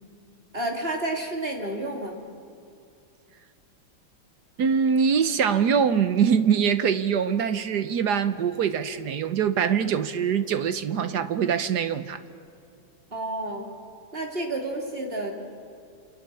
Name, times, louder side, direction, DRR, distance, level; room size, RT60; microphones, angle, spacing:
voice 1, 0.5-2.2 13.1-13.7 14.1-15.4, right 1 dB, 25° right, 3.2 m, -30 dB
voice 2, 4.6-12.2, right 7 dB, 60° right, 1.3 m, -23 dB
28.5 x 28.5 x 7.0 m
omnidirectional pair, 2.3 m